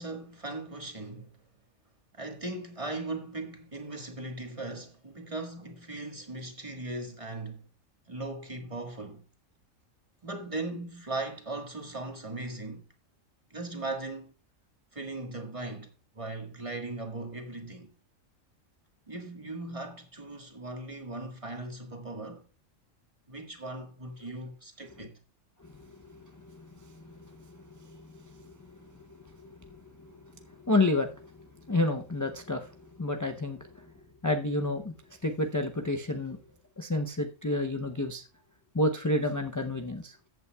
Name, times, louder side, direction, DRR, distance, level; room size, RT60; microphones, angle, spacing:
voice 1, 0.0-1.3 2.1-7.6 8.1-9.2 10.2-12.8 13.5-14.3 14.9-15.9 16.1-17.9 19.1-22.4 23.3-25.2, right 2 dB, 25° right, 1.6 m, -38 dB
voice 2, 27.0-28.0 28.3-28.4 29.6-30.1 30.6-31.1 31.7-32.7 33.0-33.6 34.2-34.9 35.2-36.4 36.8-38.2 38.7-40.2, left 2 dB, 25° left, 0.4 m, -29 dB
14.5 x 8.3 x 2.3 m
omnidirectional pair, 1.4 m